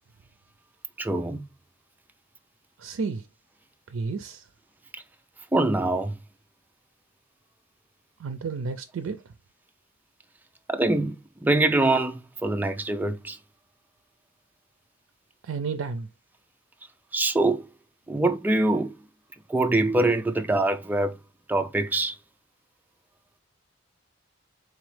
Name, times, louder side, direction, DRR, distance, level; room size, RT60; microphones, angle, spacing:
voice 1, 1.0-1.4 5.5-6.2 10.7-13.4 17.1-17.6 18.1-19.0 19.5-21.1 21.5-22.2, right 2 dB, 10° right, 0.3 m, -24 dB
voice 2, 2.8-3.2 3.9-4.4 8.2-9.2 15.4-16.1, right 4 dB, 80° right, 0.4 m, -31 dB
3.9 x 3.0 x 3.2 m
head